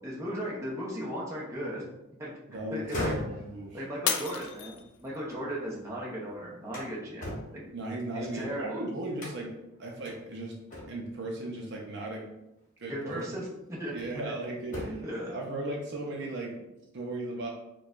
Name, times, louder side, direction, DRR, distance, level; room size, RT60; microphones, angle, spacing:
voice 1, 0.0-1.8 2.2-2.3 2.7-3.2 3.7-7.6 8.1-8.8 12.9-13.9 14.8-15.3, equal, 15° right, -5 dB, 0.7 m, -36 dB
voice 2, 2.5-3.8 7.7-10.6 10.9-12.3 12.8-13.3 13.9-15.0 15.3-16.6 16.9-17.5, right 1 dB, 55° right, -1 dB, 0.6 m, -36 dB
sound 1, 2.7-5.8 6.2-8.6 9.2-9.6 10.0-10.2 10.7-11.2 12.4-12.6 13.2-14.3 14.6-15.2, left 1 dB, 40° left, 1.0 m, -40 dB
Shatter, 4.1-5.3 5.9-6.3 6.9-7.0, left 8 dB, 70° left, 0.4 m, -32 dB
4.5 x 2.3 x 2.5 m, 0.91 s
head